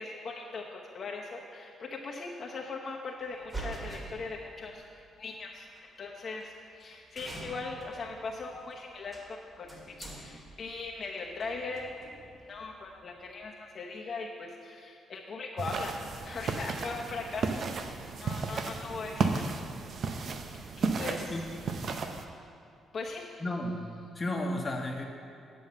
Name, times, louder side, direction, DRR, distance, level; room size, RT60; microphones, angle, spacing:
voice 1, 0.0-4.8 5.2-5.7 6.0-11.9 12.4-16.0 16.2-17.9 18.2-19.5 20.5-21.4 22.9-23.4, left 3 dB, 50° left, -1 dB, 0.9 m, -40 dB
sound 1, 3.3-4.9 5.8-5.9 6.4-6.5 6.7-6.9 7.2-13.5, right 2 dB, 20° right, 2.2 m, -46 dB
sound 2, 15.6-22.2, right 4 dB, 55° right, 0.7 m, -34 dB
voice 2, 23.4-23.8 24.1-25.1, left 1 dB, 25° left, 0 dB, 1.3 m, -32 dB
9.3 x 5.6 x 7.5 m, 2.6 s
cardioid pair, 90°, 0 cm